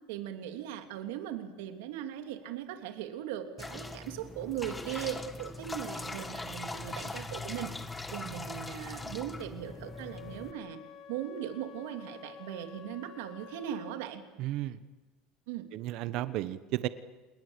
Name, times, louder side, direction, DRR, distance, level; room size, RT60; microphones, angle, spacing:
voice 1, 0.1-7.7 8.1-10.8 11.1-14.2 15.5-15.6, right 11 dB, 85° right, 7 dB, 3.1 m, -39 dB
sound 1, 3.6-10.5, left 2 dB, 10° left, 1.5 m, -41 dB
Wind instrument woodwind instrument, 9.6-14.1, left 9 dB, 40° left, 1.6 m, -50 dB
voice 2, 14.4-14.8 15.7-16.9, right 15 dB, 55° right, 13 dB, 1.1 m, -33 dB
28.5 x 19.5 x 8.2 m, 1.3 s
cardioid pair, 145°, 0 cm